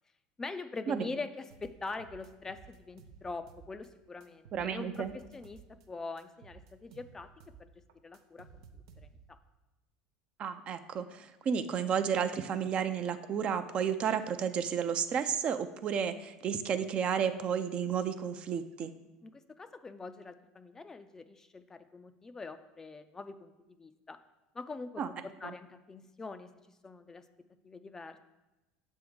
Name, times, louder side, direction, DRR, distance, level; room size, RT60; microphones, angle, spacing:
voice 1, 0.4-5.1 5.3-7.3 7.6-7.7 8.0-8.8 9.3-9.4 19.2-23.5 23.8-24.2 24.5-26.5 26.8-27.2 27.6-28.2, left 3 dB, 20° left, 10 dB, 0.4 m, -43 dB
sound 1, 1.5-3.9 4.2-5.9 6.2-9.4, right 6 dB, 85° right, 0.6 m, -55 dB
voice 2, 4.5-5.1 10.4-18.9 25.0-25.1 25.4-25.5, right 7 dB, 40° right, 10 dB, 0.5 m, -32 dB
6.9 x 3.6 x 6.2 m, 1.0 s
supercardioid pair, 105°, 3 cm